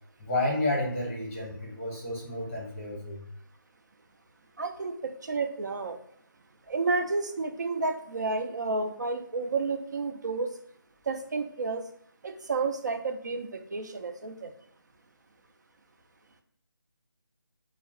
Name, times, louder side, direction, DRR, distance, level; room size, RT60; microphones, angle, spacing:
voice 1, 0.2-3.3, left 1 dB, 10° left, -4 dB, 0.8 m, -31 dB
voice 2, 4.6-6.0 6.7-10.5 11.1-11.8 12.2-14.5, right 3 dB, 55° right, 6 dB, 0.4 m, -31 dB
2.4 x 2.1 x 3.6 m, 0.64 s
figure-of-eight pair, 165°, 12 cm